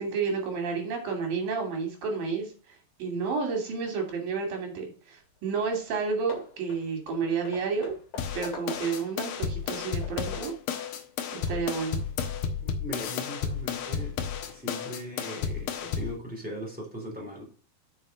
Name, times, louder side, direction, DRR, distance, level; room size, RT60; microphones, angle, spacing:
voice 1, 0.0-2.5 3.0-7.9 8.3-10.5 11.3-12.0, right 5 dB, 60° right, 2 dB, 4.2 m, -30 dB
Hammer / Wood, 5.4-5.5 5.7-6.0 6.3-9.2 9.6-10.6, left 5 dB, 50° left, 3.4 m, -44 dB
sound 1, 8.2-16.2, left 7 dB, 70° left, 2.8 m, -32 dB
voice 2, 12.8-14.2 14.5-17.5, equal, ahead, -2 dB, 2.6 m, -39 dB
7.1 x 6.3 x 5.4 m, 0.39 s
omnidirectional pair, 4.8 m